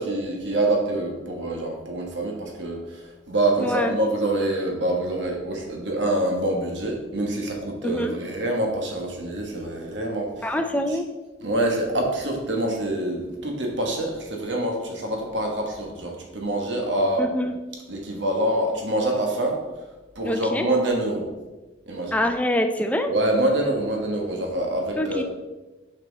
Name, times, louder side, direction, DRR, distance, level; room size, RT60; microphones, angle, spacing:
voice 1, 0.0-10.5 10.9-11.0 11.4-17.3 17.9-19.6 20.1-21.3 21.9-22.1 23.1-25.2, right 1 dB, 80° right, 1 dB, 1.4 m, -26 dB
voice 2, 3.6-4.0 7.8-8.1 10.4-11.1 17.2-17.5 20.2-20.7 22.1-23.1 25.0-25.2, left 1 dB, 10° left, 6 dB, 0.4 m, -25 dB
6.0 x 5.6 x 4.0 m, 1.1 s
head